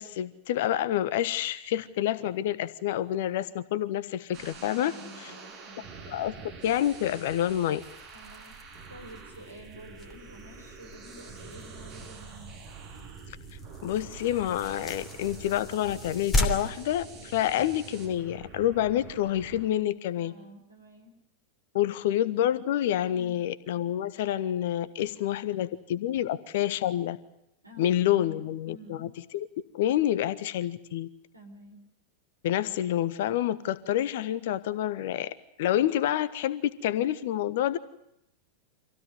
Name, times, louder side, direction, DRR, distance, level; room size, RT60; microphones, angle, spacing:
voice 1, 0.0-4.9 5.2-5.3 6.1-6.3 6.6-7.8 13.8-20.3 21.7-27.2 27.8-29.5 29.7-31.1 32.4-35.3 35.6-37.8, left 12 dB, 55° left, 14 dB, 1.3 m, -28 dB
sound 1, 4.3-19.7, right 5 dB, 45° right, 7.8 m, -46 dB
voice 2, 4.8-5.9 8.1-12.6 20.1-21.2 21.7-22.1 23.1-23.4 24.8-25.7 26.1-26.4 27.6-29.0 31.3-31.8, equal, 85° right, 3 dB, 5.6 m, -50 dB
sound 2, 7.8-17.9, left 1 dB, 20° left, 3.0 m, -37 dB
26.5 x 16.5 x 9.2 m, 0.81 s
figure-of-eight pair, 90°, 0 cm